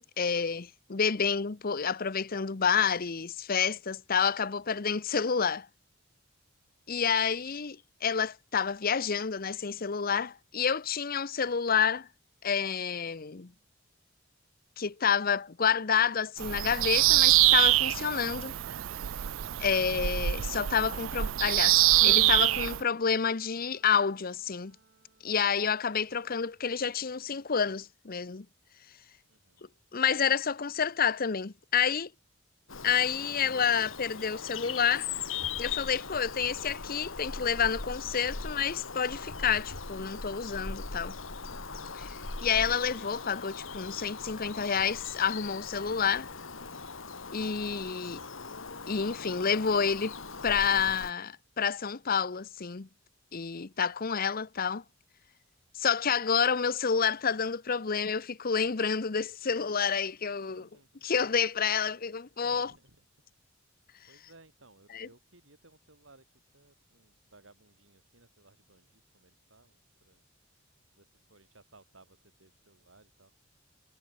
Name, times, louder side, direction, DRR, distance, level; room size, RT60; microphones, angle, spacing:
voice 1, 0.2-5.7 6.9-12.1 12.4-13.5 14.8-18.5 19.6-24.8 25.2-28.5 29.9-32.1 32.8-35.1 35.6-41.2 41.9-42.1 42.4-46.3 47.3-48.2 48.9-50.2 50.4-52.9 53.3-54.8 55.7-60.7 61.0-62.7 64.9-65.1, left 6 dB, 45° left, 0.8 m, -29 dB
Bird vocalization bird call bird song, 16.4-22.8, right 15 dB, 90° right, 0.5 m, -25 dB
Keyboard (musical), 22.0-24.1, right 3 dB, 55° right, 0.7 m, -45 dB
voice 2, 29.3-29.7 60.4-61.0 62.4-63.0 63.8-70.2 70.5-73.3, right 2 dB, 70° right, 4.8 m, -61 dB
Bird vocalization bird call bird song 2, 32.7-51.1, left 5 dB, 85° left, 2.5 m, -40 dB
head